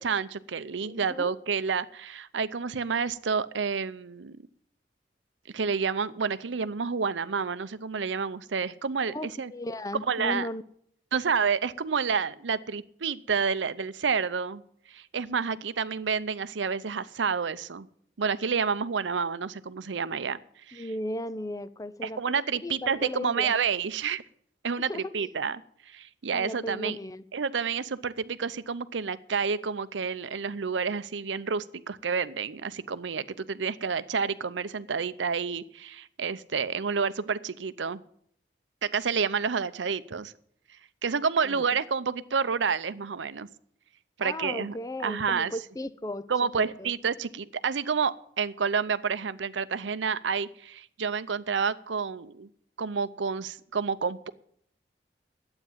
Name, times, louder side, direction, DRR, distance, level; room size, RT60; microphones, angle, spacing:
voice 1, 0.0-4.4 5.5-9.5 10.1-10.5 11.1-14.6 14.9-17.9 18.2-20.4 20.7-20.9 22.0-24.2 24.6-27.0 27.3-38.0 38.8-40.3 41.0-43.5 44.2-44.8 45.0-45.5 46.3-52.5 52.8-54.3, right 5 dB, 90° right, 15 dB, 0.6 m, -29 dB
voice 2, 0.8-1.3 9.1-10.6 20.7-22.2 22.6-23.5 24.8-25.3 26.3-27.2 41.4-41.6 44.2-46.3 46.8-46.9, left 1 dB, 20° left, 15 dB, 0.5 m, -36 dB
12.0 x 8.8 x 7.3 m, 0.65 s
head